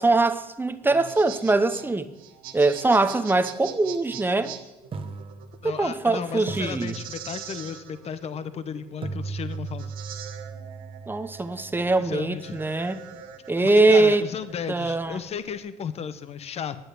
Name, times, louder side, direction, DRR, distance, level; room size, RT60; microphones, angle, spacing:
voice 1, 0.0-2.1 2.5-4.5 5.6-7.0 11.1-13.0 13.5-14.2 14.7-15.2, right 2 dB, 15° right, 0.8 m, -22 dB
sound 1, 0.8-15.6, right 9 dB, 90° right, 1.1 m, -43 dB
sound 2, 3.8-4.0 4.9-6.1 6.5-7.7 9.0-12.9, right 4 dB, 40° right, 1.2 m, -38 dB
voice 2, 5.6-9.9 12.0-12.6 13.6-16.8, left 7 dB, 45° left, 0.8 m, -34 dB
10.5 x 8.0 x 6.6 m
cardioid pair, 95°, 15 cm